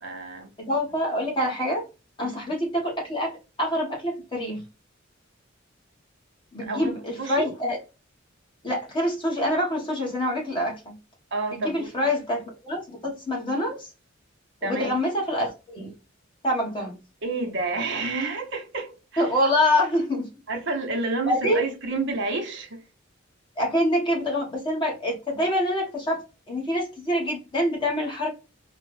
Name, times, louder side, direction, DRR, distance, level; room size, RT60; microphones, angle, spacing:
voice 1, 0.0-0.5 2.2-2.4 6.6-6.9 7.2-7.5 11.3-11.9 14.6-14.9 17.2-19.3 20.5-22.8, right 3 dB, 65° right, 1.0 m, -29 dB
voice 2, 0.6-1.9 2.2-4.6 6.5-7.8 8.6-10.9 11.5-13.9 14.6-15.9 16.4-16.9 19.2-20.3 21.3-21.7 23.6-28.3, left 1 dB, 25° left, 1.4 m, -26 dB
4.4 x 2.5 x 3.2 m
head